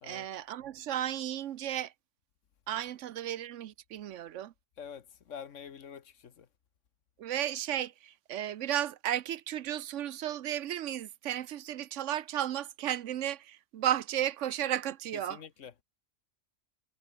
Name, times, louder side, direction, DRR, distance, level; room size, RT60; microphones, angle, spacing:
voice 1, 0.0-1.9 2.7-4.5 7.2-15.4, right 11 dB, 80° right, 1.0 m, -34 dB
voice 2, 4.8-6.5 15.1-15.7, left 7 dB, 80° left, 1.5 m, -46 dB
omnidirectional pair, 1.3 m